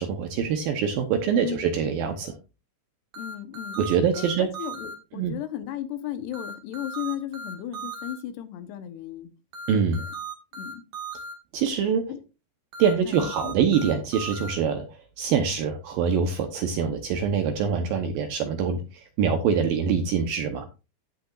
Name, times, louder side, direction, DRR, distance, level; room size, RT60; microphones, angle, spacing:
voice 1, 0.0-2.4 3.8-4.5 5.1-5.4 9.7-10.0 11.5-12.1 12.8-20.7, right 7 dB, 75° right, 6 dB, 2.2 m, -24 dB
sound 1, 3.1-4.9 6.3-8.1 9.5-11.3 12.7-14.5, right 3 dB, 55° right, 2.3 m, -37 dB
voice 2, 3.2-3.8 4.2-9.3 10.5-10.8 12.1-12.2 13.1-13.5, left 11 dB, 80° left, 9 dB, 2.9 m, -35 dB
16.0 x 5.9 x 2.5 m, 0.29 s
omnidirectional pair, 5.0 m